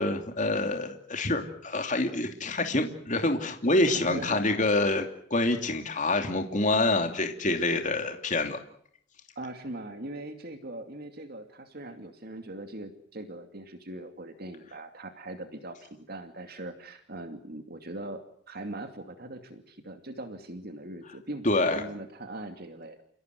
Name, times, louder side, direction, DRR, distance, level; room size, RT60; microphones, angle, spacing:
voice 1, 0.0-5.0 5.3-8.6 21.4-21.8, left 2 dB, 40° left, 5 dB, 2.8 m, -26 dB
voice 2, 3.9-4.4 9.4-23.0, right 1 dB, 50° right, 6 dB, 2.6 m, -41 dB
29.5 x 17.0 x 9.5 m, 0.65 s
head